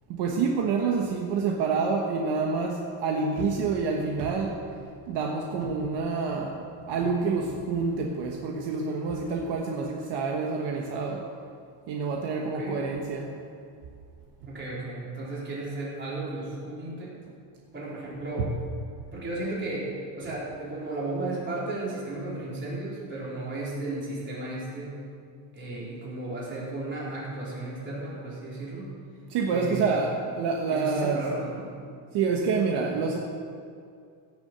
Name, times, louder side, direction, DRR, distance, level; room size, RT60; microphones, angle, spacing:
voice 1, 0.1-11.2 11.9-13.4 18.5-18.6 29.3-31.2 32.1-33.2, right 4 dB, 65° right, 0 dB, 1.4 m, -28 dB
voice 2, 12.4-12.8 14.5-17.1 17.7-18.5 19.1-25.0 25.5-28.9 29.5-30.0 30.7-31.7, right 2 dB, 25° right, -6 dB, 4.0 m, -34 dB
16.0 x 7.1 x 7.9 m, 2.3 s
cardioid pair, 180°, 45 cm